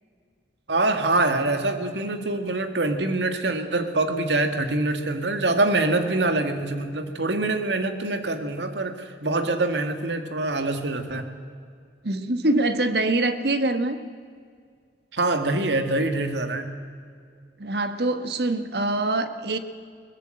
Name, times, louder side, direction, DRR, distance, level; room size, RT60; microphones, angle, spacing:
voice 1, 0.7-11.3 15.1-16.7, right 2 dB, 80° right, 7 dB, 2.0 m, -25 dB
voice 2, 12.0-14.0 17.6-19.6, right 2 dB, 65° right, 10 dB, 1.4 m, -24 dB
22.0 x 19.5 x 7.8 m, 2.2 s
head